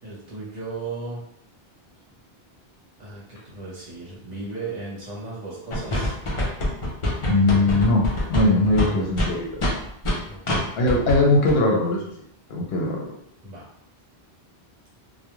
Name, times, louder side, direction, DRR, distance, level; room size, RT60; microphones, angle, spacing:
voice 1, 0.0-1.2 3.0-6.2 10.2-10.6 13.4-13.7, right 3 dB, 45° right, -7 dB, 0.9 m, -36 dB
sound 1, 5.7-10.2 10.5-10.6 10.9-11.2 11.5-11.6, left 1 dB, 40° left, 0.5 m, -24 dB
voice 2, 7.2-9.6 10.8-12.1 12.5-13.1, left 2 dB, 70° left, -1 dB, 0.8 m, -20 dB
2.3 x 2.2 x 2.9 m, 0.73 s
omnidirectional pair, 1.1 m